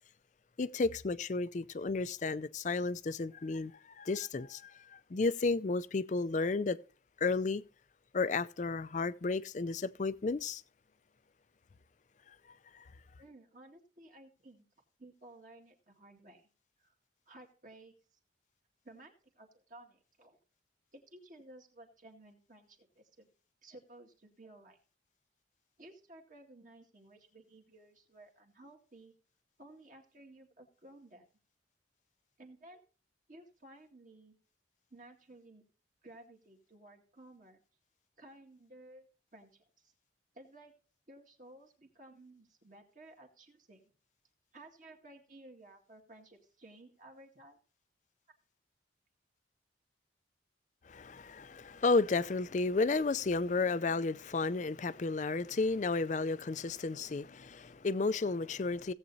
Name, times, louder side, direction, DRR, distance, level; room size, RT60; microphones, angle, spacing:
voice 1, 0.6-6.8 7.2-7.6 8.1-10.6 12.7-12.8 50.9-58.9, left 3 dB, 40° left, 0.4 m, -32 dB
voice 2, 13.2-14.7 15.0-16.5 16.8-17.0 17.3-18.2 18.8-20.4 20.9-23.3 23.6-24.8 25.8-29.1 29.6-31.2 32.4-32.8 33.3-34.4 34.9-35.6 36.0-37.6 38.2-39.1 39.3-39.9 40.3-40.7 41.1-43.8 44.5-47.6, right 1 dB, 40° right, 2.0 m, -56 dB
17.0 x 8.1 x 2.7 m
head